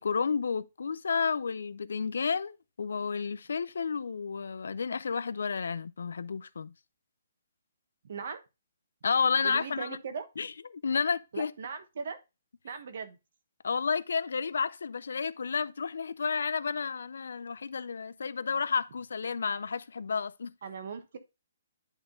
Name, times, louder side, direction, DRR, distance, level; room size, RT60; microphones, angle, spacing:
voice 1, 0.0-6.7 9.0-10.0 10.4-11.5 13.6-20.5, left 5 dB, 80° left, 0.5 m, -31 dB
voice 2, 8.0-8.4 9.4-10.3 11.3-12.2 12.6-13.2 20.6-21.2, right 5 dB, 55° right, 1.1 m, -38 dB
9.9 x 3.6 x 3.7 m
hypercardioid pair, 165°, 0 cm